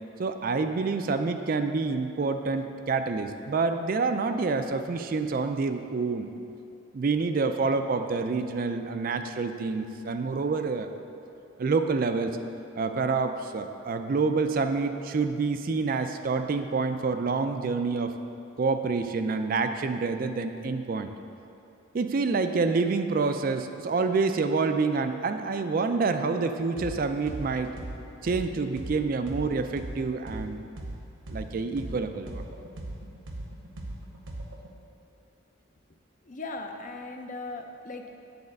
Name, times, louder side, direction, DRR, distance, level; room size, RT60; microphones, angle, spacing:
voice 1, 0.2-6.3 6.9-10.9 11.6-12.4 12.8-18.2 18.6-21.1 21.9-27.8 28.2-30.6 31.3-32.4, right 4 dB, 45° right, 8 dB, 0.3 m, -27 dB
sound 1, 26.8-27.0 27.3-31.0 31.3-34.7, right 1 dB, 85° right, 1.1 m, -38 dB
voice 2, 36.3-38.1, left 2 dB, 40° left, 4 dB, 0.5 m, -38 dB
9.5 x 4.2 x 6.5 m, 2.7 s
head